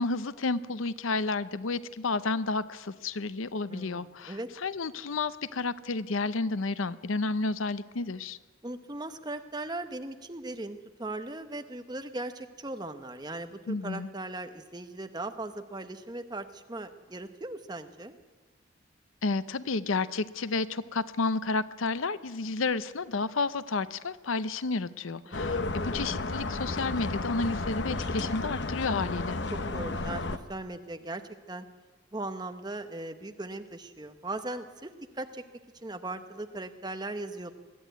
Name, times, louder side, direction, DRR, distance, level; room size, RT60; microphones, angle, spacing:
voice 1, 0.0-8.4 13.7-14.1 19.2-29.4, left 3 dB, 80° left, 14 dB, 0.7 m, -31 dB
voice 2, 3.7-4.5 8.6-18.2 25.3-25.7 29.7-31.2 31.5-31.7 32.1-35.4 35.8-37.5, right 2 dB, 20° right, 8 dB, 0.9 m, -38 dB
sound 1, 25.3-30.4, left 2 dB, 60° left, 0.9 m, -32 dB
21.5 x 13.0 x 9.3 m, 1.3 s
head